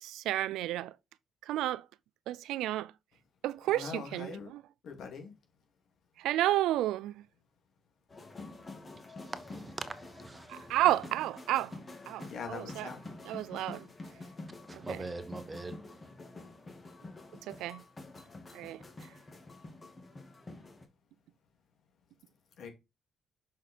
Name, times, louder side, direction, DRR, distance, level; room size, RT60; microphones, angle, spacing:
voice 1, 0.0-0.9 1.5-1.8 2.3-2.9 3.4-4.6 6.2-7.2 10.5-11.8 12.1-12.9 13.2-13.8 14.7-14.8 17.5-17.8 18.5-18.8, right 14 dB, 90° right, 0.4 m, -31 dB
voice 2, 3.7-4.5 4.8-5.3 12.2-13.1 22.6-22.7, left 5 dB, 70° left, 2.5 m, -42 dB
sound 1, 8.1-20.9, left 2 dB, 30° left, 2.0 m, -48 dB
voice 3, 8.9-10.7 14.7-16.1, right 3 dB, 25° right, 1.1 m, -43 dB
6.2 x 5.7 x 4.3 m
cardioid pair, 90°, 0 cm